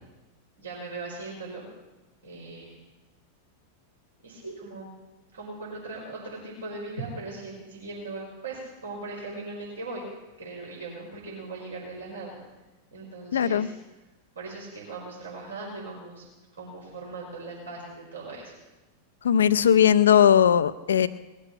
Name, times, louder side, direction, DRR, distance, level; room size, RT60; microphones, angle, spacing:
voice 1, 0.6-1.7 2.2-2.8 4.2-4.9 5.3-10.1 10.4-12.4 12.9-13.7 14.3-16.2 16.5-18.6, right 3 dB, 75° right, -4 dB, 4.9 m, -39 dB
voice 2, 13.3-13.7 19.2-21.1, left 9 dB, 65° left, 12 dB, 0.6 m, -19 dB
20.0 x 8.5 x 8.6 m, 1.1 s
figure-of-eight pair, 90°, 0 cm